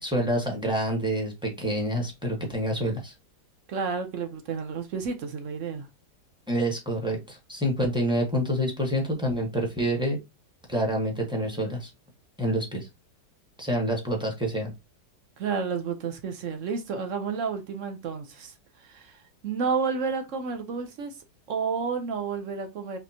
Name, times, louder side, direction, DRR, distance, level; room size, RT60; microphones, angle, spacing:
voice 1, 0.0-3.1 6.5-10.2 10.7-11.9 12.4-12.9 13.6-14.7, equal, 5° right, 0.9 m, -27 dB
voice 2, 3.7-5.9 15.4-21.1 21.5-23.0, right 5 dB, 55° right, 0.9 m, -31 dB
4.2 x 3.1 x 2.8 m
omnidirectional pair, 1.8 m